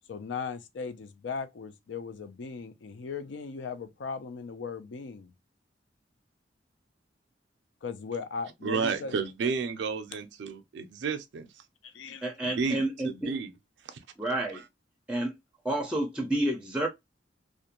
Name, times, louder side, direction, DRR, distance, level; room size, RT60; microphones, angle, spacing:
voice 1, 0.1-5.3 7.8-9.1 11.8-12.3, left 5 dB, 80° left, 0.4 m, -38 dB
voice 2, 8.6-11.6 12.4-13.5 13.8-14.0 14.5-14.7, right 5 dB, 75° right, 0.4 m, -32 dB
voice 3, 12.2-13.4 14.2-14.6 15.1-15.3 15.6-16.9, right 1 dB, 5° right, 0.4 m, -29 dB
2.4 x 2.1 x 2.8 m
head